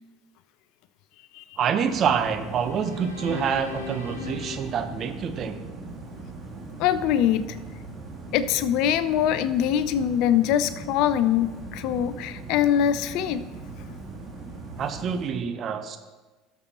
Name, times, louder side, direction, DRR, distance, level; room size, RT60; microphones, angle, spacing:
voice 1, 1.6-5.6 14.8-16.0, right 7 dB, 45° right, 8 dB, 0.9 m, -27 dB
sound 1, 1.8-15.3, right 3 dB, 20° right, 2.9 m, -40 dB
sound 2, 2.4-5.8, left 6 dB, 85° left, 1.3 m, -40 dB
voice 2, 6.8-7.6 8.3-13.4, left 10 dB, 60° left, 14 dB, 0.5 m, -23 dB
18.0 x 6.7 x 2.9 m, 1.2 s
figure-of-eight pair, 65°, 0 cm